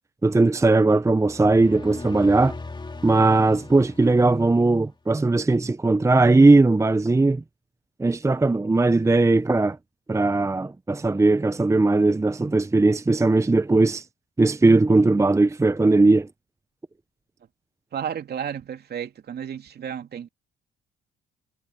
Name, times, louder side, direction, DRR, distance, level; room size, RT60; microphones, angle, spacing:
voice 1, 0.2-2.6 3.0-7.4 8.0-9.8 10.1-14.0 14.4-16.3, right 2 dB, 15° right, 0.9 m, -19 dB
sound 1, 1.0-4.9, left 3 dB, 25° left, 3.4 m, -39 dB
voice 2, 17.9-20.3, right 8 dB, 50° right, 2.8 m, -32 dB
supercardioid pair, 65°, 20 cm